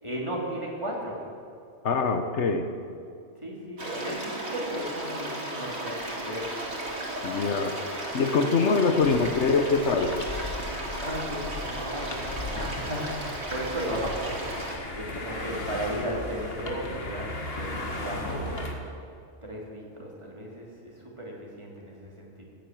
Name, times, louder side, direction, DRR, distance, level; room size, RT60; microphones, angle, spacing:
voice 1, 0.0-1.2 3.4-6.7 11.0-17.3 17.6-18.7 19.4-22.4, right 1 dB, 25° right, -3 dB, 3.2 m, -35 dB
voice 2, 1.8-2.7 7.2-7.7 8.1-10.1, left 4 dB, 70° left, 7 dB, 1.2 m, -23 dB
sound 1, 3.8-14.8, right 1 dB, 60° right, 3.0 m, -35 dB
sound 2, 9.0-18.7, left 2 dB, 55° left, 1.9 m, -37 dB
15.0 x 9.5 x 9.2 m, 2.5 s
omnidirectional pair, 1.2 m